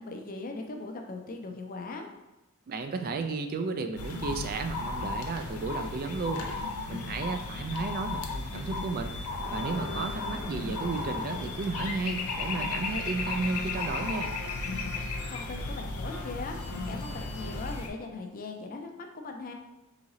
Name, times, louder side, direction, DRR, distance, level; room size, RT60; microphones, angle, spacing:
voice 1, 0.0-2.1 15.3-19.5, left 3 dB, 40° left, 4 dB, 0.5 m, -39 dB
voice 2, 2.7-6.4 6.9-9.2 9.5-14.3, right 3 dB, 40° right, 7 dB, 0.3 m, -33 dB
sound 1, 4.0-17.9, left 3 dB, 85° left, 0.6 m, -35 dB
sound 2, 8.8-17.7, left 2 dB, 65° left, 1.0 m, -44 dB
4.0 x 3.7 x 3.0 m, 1.0 s
head